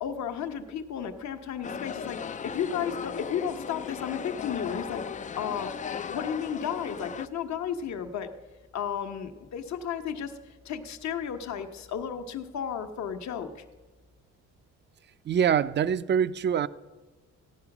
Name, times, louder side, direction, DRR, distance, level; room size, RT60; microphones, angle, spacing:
voice 1, 0.0-8.3 8.7-13.5, left 8 dB, 65° left, 1.2 m, -33 dB
sound 1, 1.6-7.3, left 7 dB, 25° left, 0.3 m, -37 dB
voice 2, 15.3-16.7, right 8 dB, 35° right, 0.5 m, -24 dB
15.0 x 9.7 x 6.0 m
cardioid pair, 90°, 30 cm